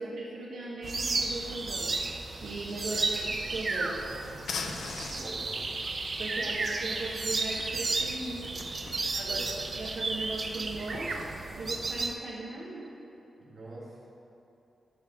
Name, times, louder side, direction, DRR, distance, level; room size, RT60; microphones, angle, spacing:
voice 1, 0.0-1.9 2.4-3.2 3.5-4.0 6.2-8.5 9.1-9.4 9.8-11.2 11.5-12.9, right 2 dB, 80° right, -5 dB, 1.0 m, -38 dB
sound 1, 0.8-12.1, right 3 dB, 40° right, 0.5 m, -33 dB
voice 2, 2.8-3.3 4.6-5.7 6.4-6.6 9.2-9.6 13.4-14.0, right 1 dB, 60° right, -4 dB, 1.7 m, -46 dB
sound 2, 3.3-11.3, left 5 dB, 85° left, 0.5 m, -44 dB
10.5 x 3.5 x 6.1 m, 2.9 s
cardioid pair, 100°, 0 cm